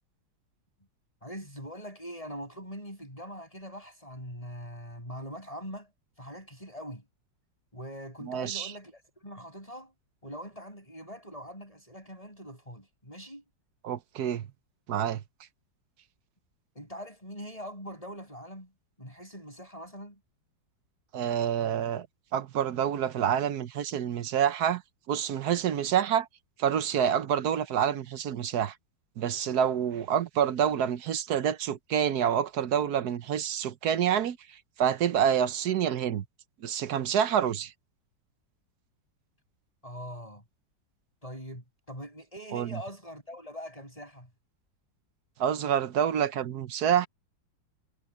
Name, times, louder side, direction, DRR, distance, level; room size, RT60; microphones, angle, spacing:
voice 1, 1.2-5.9 6.2-7.0 7.7-9.9 10.2-13.4 16.7-18.7 19.0-20.2 39.8-40.4 41.2-44.3, equal, 15° left, 7.8 m, -42 dB
voice 2, 8.3-8.7 13.8-14.4 14.9-15.2 21.1-22.1 22.3-24.8 25.1-26.3 26.6-28.7 29.2-34.4 34.8-36.2 36.6-37.7 42.5-42.7 45.4-47.1, right 9 dB, 60° right, 1.2 m, -27 dB
omnidirectional pair, 2.1 m